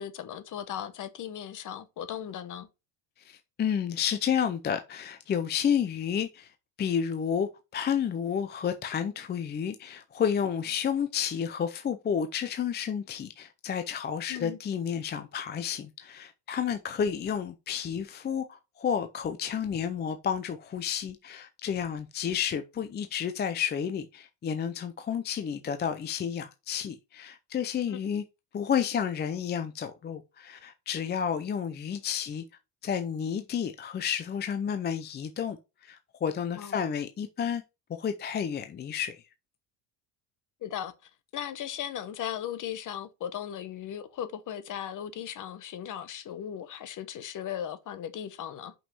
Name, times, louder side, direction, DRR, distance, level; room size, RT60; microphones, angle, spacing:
voice 1, 0.0-2.7 14.3-14.6 27.9-28.0 36.6-36.8 40.6-48.7, left 10 dB, 45° left, 1.0 m, -37 dB
voice 2, 3.2-6.5 6.8-28.2 28.5-32.4 32.8-35.6 35.8-37.6 38.0-39.2, left 8 dB, 25° left, 0.5 m, -31 dB
5.7 x 5.6 x 5.4 m
cardioid pair, 155°, 45 cm